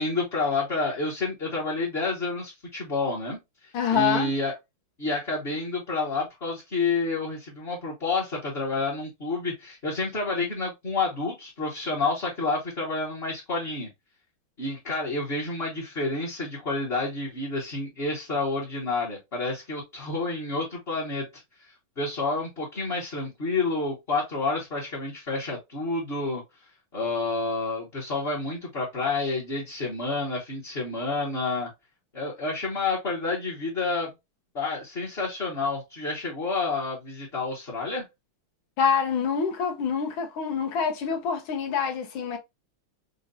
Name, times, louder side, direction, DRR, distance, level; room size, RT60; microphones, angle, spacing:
voice 1, 0.0-4.5 5.0-13.9 14.6-21.7 22.0-26.4 26.9-31.7 32.1-34.1 34.5-38.0, left 3 dB, 35° left, 1.2 m, -29 dB
voice 2, 3.7-4.3 38.8-42.4, left 7 dB, 70° left, 1.6 m, -26 dB
5.2 x 2.5 x 2.6 m
omnidirectional pair, 2.3 m